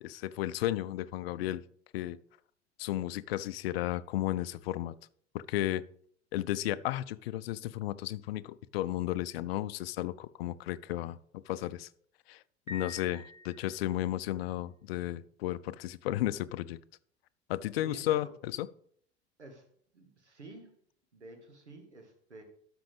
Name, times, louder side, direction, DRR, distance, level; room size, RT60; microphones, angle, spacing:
voice 1, 0.0-1.6 1.9-2.2 2.8-5.0 5.3-5.8 6.3-11.9 12.3-16.8 17.5-18.3 18.6-18.7, left 14 dB, 60° left, 17 dB, 0.5 m, -33 dB
Piano, 12.7-14.1, left 3 dB, 15° right, 1.0 m, -47 dB
voice 2, 17.8-18.3 19.4-19.7 19.9-20.7 21.1-22.4, right 2 dB, 85° right, 4 dB, 1.7 m, -50 dB
12.5 x 6.0 x 3.5 m, 0.62 s
figure-of-eight pair, 75°, 34 cm